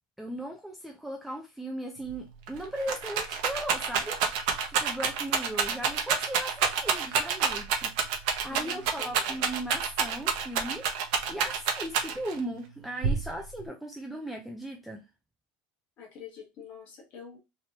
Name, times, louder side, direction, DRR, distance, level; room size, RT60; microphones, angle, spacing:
voice 1, 0.2-10.9 11.3-15.1, right 1 dB, ahead, 0.4 m, -38 dB
Rattle, 2.1-2.2 2.5-12.4 13.0-13.6, right 6 dB, 60° right, 0.8 m, -28 dB
voice 2, 8.5-9.4 16.0-17.4, left 6 dB, 35° left, 1.3 m, -46 dB
3.2 x 2.9 x 2.8 m
cardioid pair, 175°, 4 cm